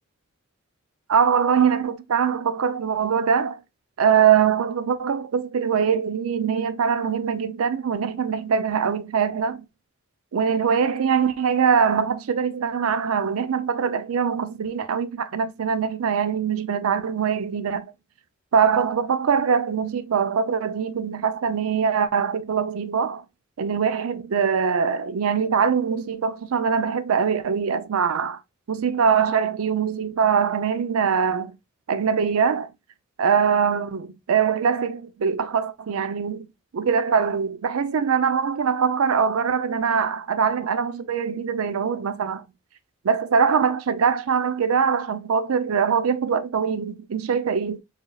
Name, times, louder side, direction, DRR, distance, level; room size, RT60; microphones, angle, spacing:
voice 1, 1.1-3.6 4.0-9.6 10.3-17.9 18.5-23.2 23.6-28.4 28.7-31.5 31.9-32.7 33.2-36.5 36.7-42.5 43.0-47.8, right 6 dB, 80° right, 0.5 m, -22 dB
4.8 x 2.8 x 2.3 m
head